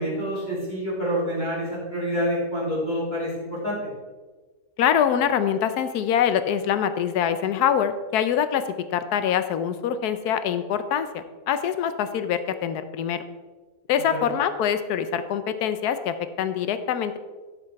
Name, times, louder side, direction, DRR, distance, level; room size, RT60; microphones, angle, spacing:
voice 1, 0.0-3.8 14.1-14.3, equal, 30° left, -7 dB, 3.3 m, -27 dB
voice 2, 4.8-8.6 8.9-13.2 13.9-17.2, left 8 dB, 80° left, 11 dB, 1.2 m, -24 dB
11.0 x 5.5 x 4.6 m, 1.3 s
omnidirectional pair, 1.6 m